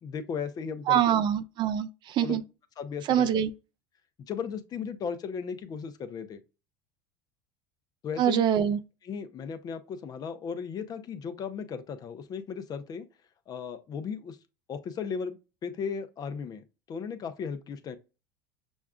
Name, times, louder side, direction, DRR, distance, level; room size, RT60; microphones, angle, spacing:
voice 1, 0.0-1.2 2.2-2.4 2.8-3.3 4.3-6.4 8.0-8.4 9.0-13.1 13.5-14.4 14.7-17.9, left 6 dB, 40° left, 0.6 m, -36 dB
voice 2, 0.9-2.4 3.1-3.5 8.2-8.8, right 10 dB, 50° right, 0.4 m, -24 dB
6.2 x 2.4 x 2.3 m
supercardioid pair, 95°, 10 cm